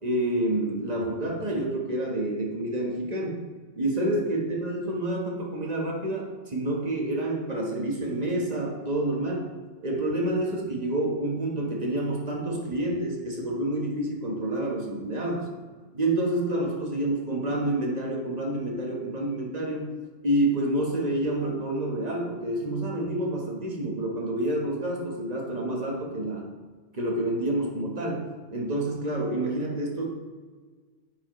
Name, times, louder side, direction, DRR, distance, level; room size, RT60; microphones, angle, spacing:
voice 1, 0.0-3.4 3.8-9.5 9.8-15.5 15.9-19.9 20.2-26.5 26.9-28.3 28.5-30.1, right 1 dB, 35° right, -1 dB, 1.2 m, -28 dB
8.7 x 4.7 x 3.1 m, 1.4 s
omnidirectional pair, 1.2 m